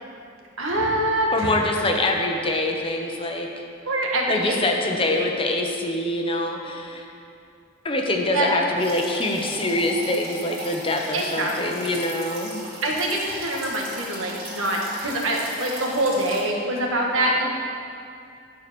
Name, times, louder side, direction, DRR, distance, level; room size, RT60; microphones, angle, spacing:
voice 1, 0.6-1.5 3.9-4.6 5.1-5.2 8.3-8.4 11.1-11.8 12.8-17.5, right 1 dB, 90° right, -1 dB, 1.6 m, -25 dB
voice 2, 1.3-3.7 4.3-7.0 7.8-12.6, left 1 dB, 25° left, 2 dB, 0.9 m, -25 dB
sound 1, 8.8-16.4, right 1 dB, 50° right, 2.8 m, -38 dB
12.0 x 4.7 x 6.8 m, 2.5 s
head